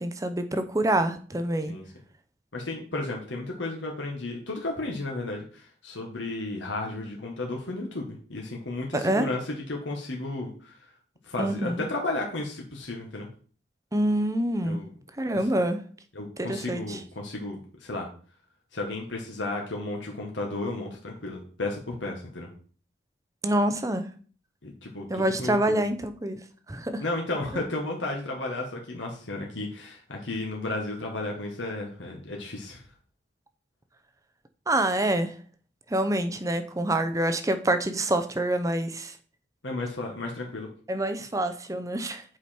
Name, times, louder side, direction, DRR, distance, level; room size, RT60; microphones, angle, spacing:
voice 1, 0.0-1.7 8.9-9.3 11.4-11.8 13.9-14.8 15.2-15.8 16.4-17.0 23.4-24.0 25.1-26.4 26.7-27.0 34.7-35.3 35.9-39.1 40.9-42.2, right 1 dB, 20° right, 9 dB, 0.6 m, -26 dB
voice 2, 2.5-10.8 11.2-13.3 14.6-14.9 15.3-15.5 16.1-18.1 18.7-22.5 24.6-25.8 27.0-32.8 39.6-40.7, left 2 dB, 80° left, 0 dB, 1.5 m, -33 dB
8.3 x 5.0 x 4.3 m, 0.42 s
head